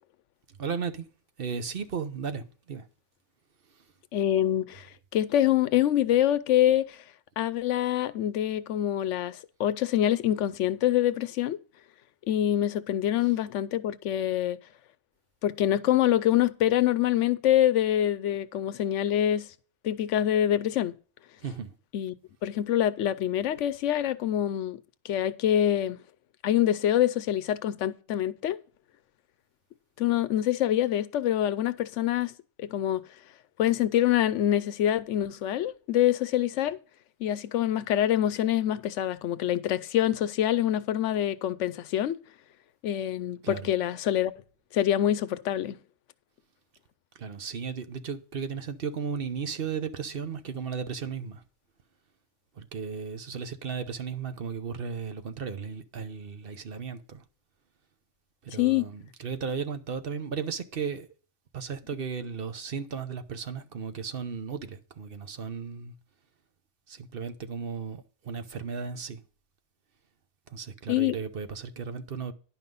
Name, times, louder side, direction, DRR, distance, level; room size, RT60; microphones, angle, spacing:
voice 1, 0.6-1.1 1.4-2.8 21.4-21.7 43.4-43.6 47.2-51.4 52.6-57.2 58.4-61.1 61.5-65.9 66.9-69.2 70.5-72.3, right 6 dB, 55° right, 1.0 m, -35 dB
voice 2, 4.1-7.0 7.4-11.6 12.3-14.6 15.4-19.5 19.8-21.0 21.9-22.1 22.4-26.0 26.4-28.6 30.0-32.3 32.6-33.0 33.6-36.8 37.2-42.2 42.8-44.3 44.7-45.8 58.6-58.8 70.9-71.2, left 11 dB, 80° left, 0.9 m, -25 dB
10.5 x 5.7 x 5.4 m
omnidirectional pair, 1.2 m